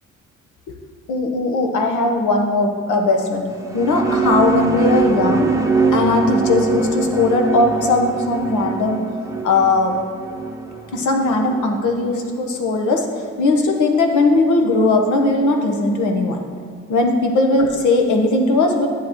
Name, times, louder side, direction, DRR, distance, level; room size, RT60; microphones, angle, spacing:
voice 1, 1.1-3.5 3.7-5.5 5.9-9.1 9.4-10.0 10.9-13.0 13.4-16.4 16.9-18.9, left 2 dB, 75° left, 3 dB, 1.1 m, -18 dB
sound 1, 3.5-12.1, right 4 dB, 10° right, 0.7 m, -23 dB
10.0 x 7.8 x 3.0 m, 2.1 s
cardioid pair, 90°, 30 cm